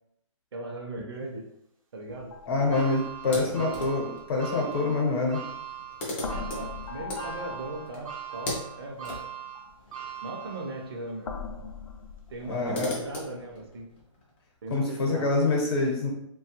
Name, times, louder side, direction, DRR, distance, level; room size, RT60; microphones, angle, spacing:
voice 1, 0.5-1.5 1.9-2.7 3.2-3.8 6.3-9.2 10.2-11.3 12.3-13.9 14.6-15.3, right 2 dB, 50° right, 1 dB, 0.6 m, -38 dB
sound 1, 2.1-5.7 6.2-8.7 9.6-9.7 11.2-13.1, left 5 dB, 75° left, 0.5 m, -41 dB
voice 2, 2.5-5.4 12.4-12.9 14.7-16.1, left 3 dB, 45° left, -1 dB, 0.9 m, -26 dB
sound 2, 2.7-11.1 11.6-11.7 12.8-12.9, right 9 dB, 80° right, 0.7 m, -41 dB
sound 3, 3.2-4.2 5.3-5.4 5.6-11.1 11.4-11.5 12.3-14.8, left 1 dB, 20° left, 0.4 m, -40 dB
2.9 x 2.3 x 2.8 m, 0.78 s
hypercardioid pair, 170°, 17 cm